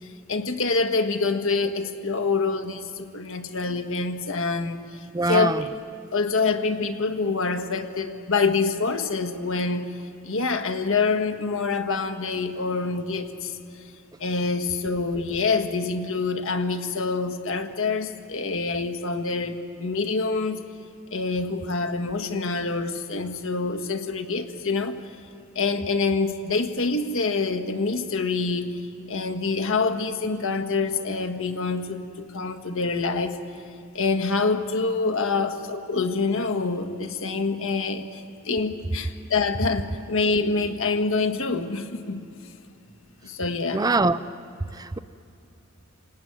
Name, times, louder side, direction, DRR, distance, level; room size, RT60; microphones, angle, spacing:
voice 1, 0.0-5.8 6.1-10.0 10.2-13.6 14.2-20.6 21.1-25.0 25.5-28.8 29.1-33.4 33.9-42.2 43.2-43.9, left 4 dB, 65° left, 7 dB, 1.7 m, -26 dB
voice 2, 5.1-5.6 43.7-44.2 44.7-45.0, right 3 dB, 15° right, 13 dB, 0.5 m, -23 dB
28.0 x 18.0 x 9.7 m, 2.7 s
head